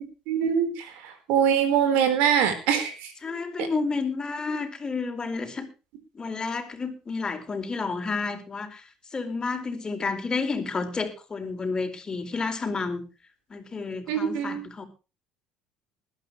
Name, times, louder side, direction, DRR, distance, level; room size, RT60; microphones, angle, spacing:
voice 1, 0.3-3.1 3.6-3.7 14.1-14.6, right 8 dB, 70° right, 10 dB, 4.0 m, -24 dB
voice 2, 3.2-5.7 6.1-8.8 9.1-13.0 13.5-14.8, left 4 dB, 30° left, 6 dB, 4.5 m, -30 dB
20.5 x 12.5 x 3.2 m, 0.32 s
hypercardioid pair, 65°, 3 cm